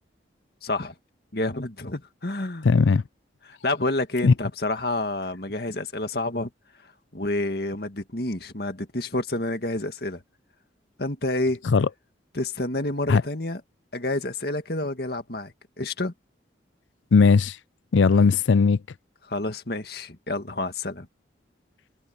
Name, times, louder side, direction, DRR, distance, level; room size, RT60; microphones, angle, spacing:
voice 1, 0.6-0.9 1.3-2.7 3.5-6.5 7.1-10.2 11.0-11.6 12.3-13.6 13.9-16.1 19.3-21.1, left 2 dB, 55° left, 2.0 m, -29 dB
voice 2, 2.6-3.0 4.2-4.3 11.6-11.9 13.1-13.2 17.1-17.6 17.9-18.8, left 5 dB, 85° left, 0.5 m, -18 dB
head